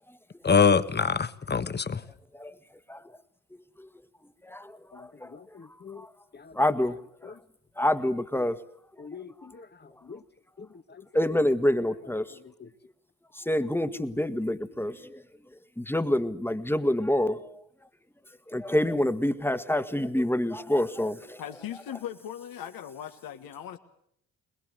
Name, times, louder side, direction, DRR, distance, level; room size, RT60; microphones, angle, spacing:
voice 1, 0.4-2.0 4.9-5.1 5.3-6.0 6.3-6.5 9.0-9.6 10.0-10.2 10.6-11.0 12.6-12.7, left 5 dB, 30° left, 1.4 m, -27 dB
voice 2, 4.4-5.3 6.0-6.1 6.5-7.0 7.2-7.3 7.8-8.6 11.1-12.4 13.3-15.2 15.8-17.6 18.5-21.4, left 1 dB, 5° left, 1.7 m, -27 dB
voice 3, 21.4-23.8, left 10 dB, 65° left, 1.7 m, -39 dB
21.5 x 21.5 x 8.1 m
supercardioid pair, 55°, 36 cm